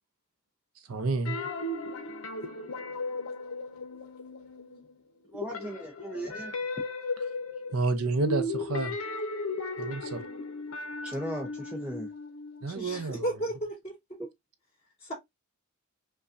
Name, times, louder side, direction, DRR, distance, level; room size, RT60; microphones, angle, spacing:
voice 1, 0.9-1.4 7.7-8.9 9.8-10.2 12.6-13.4, right 3 dB, 75° right, 0.6 m, -29 dB
sound 1, 1.2-5.0 5.3-13.1, left 2 dB, 70° left, 0.8 m, -36 dB
voice 2, 5.3-6.5 11.0-12.1 14.2-14.3, right 1 dB, 5° right, 0.6 m, -37 dB
voice 3, 12.7-14.2 15.0-15.1, right 1 dB, 30° left, 2.5 m, -34 dB
5.3 x 2.3 x 2.5 m
head